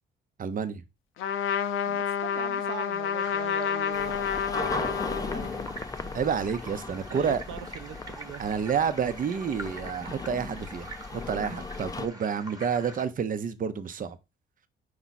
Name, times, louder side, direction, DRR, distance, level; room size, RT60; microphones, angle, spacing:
voice 1, 0.4-0.8 6.1-7.4 8.4-14.2, right 7 dB, 45° right, 0.8 m, -29 dB
Trumpet, 1.2-5.8, left 8 dB, 85° left, 0.8 m, -29 dB
voice 2, 1.9-5.7 6.0-6.2 6.9-8.4, right 10 dB, 90° right, 0.7 m, -41 dB
sound 1, 3.2-13.1, right 1 dB, 20° right, 1.4 m, -45 dB
sound 2, 3.9-12.1, left 3 dB, 20° left, 0.6 m, -37 dB
5.2 x 4.6 x 4.2 m
cardioid pair, 90°, 20 cm